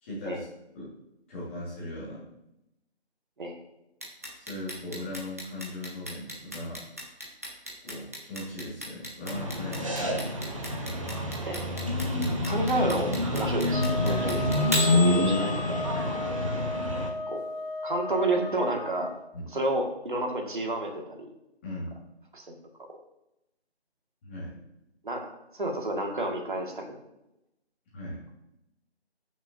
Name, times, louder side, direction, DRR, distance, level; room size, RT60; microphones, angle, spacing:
voice 1, 0.0-0.5 0.7-0.9 1.3-2.3 4.5-6.9 7.8-10.3 12.1-12.5 14.8-15.1 15.9-16.2 19.3-19.5 21.6-22.0 24.2-24.6 27.9-28.2, left 1 dB, 10° left, -7 dB, 1.7 m, -38 dB
Clock, 4.0-16.0, left 1 dB, 15° right, 0.7 m, -34 dB
sound 1, 9.3-17.1, left 1 dB, 30° right, 1.0 m, -28 dB
voice 2, 12.4-15.8 17.3-17.4 17.8-19.1 19.5-21.3 22.3-22.5 25.0-26.8, right 2 dB, 50° right, 2 dB, 1.7 m, -30 dB
sound 2, 13.7-19.1, left 3 dB, 75° right, 1.6 m, -35 dB
13.5 x 6.2 x 2.6 m, 0.87 s
figure-of-eight pair, 165°, 33 cm